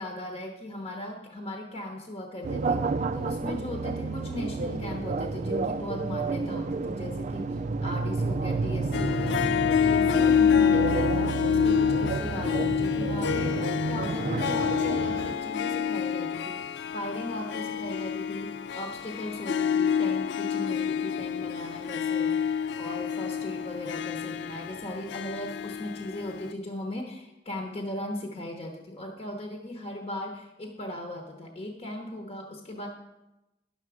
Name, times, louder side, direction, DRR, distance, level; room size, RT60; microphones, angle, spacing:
voice 1, 0.0-2.9 3.1-16.6 16.9-22.4 22.8-32.9, left 1 dB, 35° left, 2 dB, 1.0 m, -38 dB
sound 1, 2.4-15.3, right 3 dB, 40° right, 0.4 m, -30 dB
Harp, 8.9-26.5, left 7 dB, 65° left, 0.4 m, -27 dB
11.0 x 7.0 x 4.9 m, 0.97 s
head